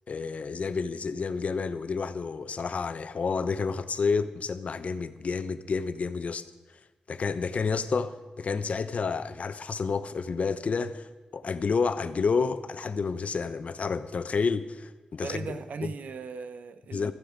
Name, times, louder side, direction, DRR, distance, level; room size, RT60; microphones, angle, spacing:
voice 1, 0.1-6.4 7.1-11.1 11.3-15.9 16.9-17.1, left 5 dB, 60° left, 0.9 m, -30 dB
voice 2, 15.2-17.1, right 5 dB, 90° right, 0.9 m, -38 dB
15.5 x 14.0 x 5.1 m
wide cardioid pair, 100°, 3 cm